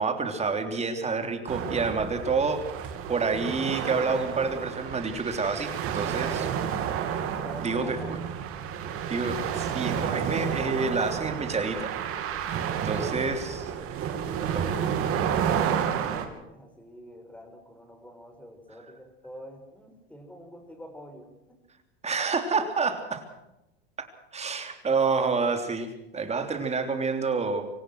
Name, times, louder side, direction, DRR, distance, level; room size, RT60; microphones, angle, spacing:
voice 1, 0.0-2.7 3.1-6.5 7.6-8.0 9.1-11.9 12.8-13.7 14.5-14.6 22.0-23.2 24.0-24.1 24.3-27.6, right 4 dB, 20° right, 6 dB, 3.4 m, -28 dB
sound 1, 1.5-16.3, right 8 dB, 45° right, 3.1 m, -30 dB
voice 2, 7.4-8.3 12.5-13.2 14.1-21.6, equal, 5° left, 4 dB, 6.1 m, -46 dB
25.5 x 16.0 x 6.4 m, 0.95 s
supercardioid pair, 110°, 31 cm